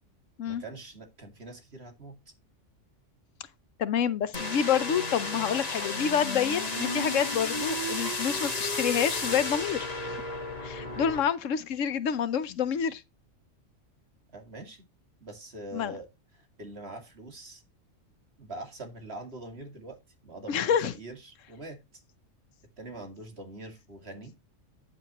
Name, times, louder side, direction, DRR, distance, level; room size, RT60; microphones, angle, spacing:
voice 1, 0.5-2.1 14.3-14.8 15.2-16.1 16.3-17.6 18.4-21.8 22.8-24.3, right 2 dB, 55° right, 2.6 m, -43 dB
voice 2, 3.8-10.2 10.6-13.0 15.7-16.0 20.5-20.9, left 8 dB, 85° left, 1.2 m, -28 dB
sound 1, 4.3-11.2, left 2 dB, 35° left, 1.7 m, -32 dB
9.6 x 8.8 x 3.0 m
omnidirectional pair, 1.3 m